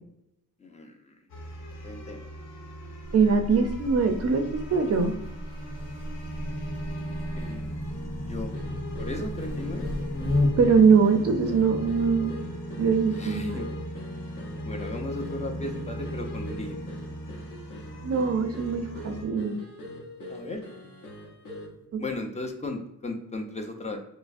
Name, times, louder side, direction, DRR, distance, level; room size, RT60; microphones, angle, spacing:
voice 1, 0.6-1.2 1.8-2.3 7.4-7.8 8.3-8.5 9.0-9.9 13.1-13.8 14.6-16.8 20.3-20.7 22.0-24.0, left 2 dB, 20° left, 4 dB, 0.5 m, -36 dB
sound 1, 1.3-19.3, equal, 90° left, 0.9 m, -37 dB
Buzz, 3.0-10.8, left 1 dB, 40° left, 1.3 m, -33 dB
voice 2, 3.1-4.4 4.7-5.1 10.6-12.4 12.8-13.7 18.0-19.5 21.9-22.0, right 5 dB, 45° right, 6 dB, 0.4 m, -22 dB
sound 2, 8.5-21.8, left 1 dB, 60° left, 0.9 m, -44 dB
4.6 x 2.0 x 2.5 m, 0.79 s
cardioid pair, 110°, 36 cm